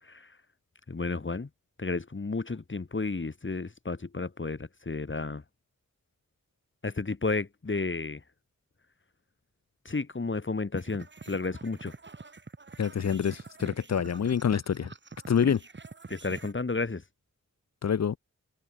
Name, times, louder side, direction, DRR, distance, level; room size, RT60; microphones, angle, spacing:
voice 1, 0.0-0.4 0.9-1.5 1.8-5.4 6.8-8.2 9.8-11.9 16.1-17.0, left 3 dB, 40° left, 2.8 m, -32 dB
sound 1, 10.7-16.5, right 4 dB, 40° right, 1.6 m, -46 dB
voice 2, 12.8-14.9 15.3-15.6 17.8-18.2, left 7 dB, 60° left, 0.6 m, -26 dB
open air
wide cardioid pair, 105°, 30 cm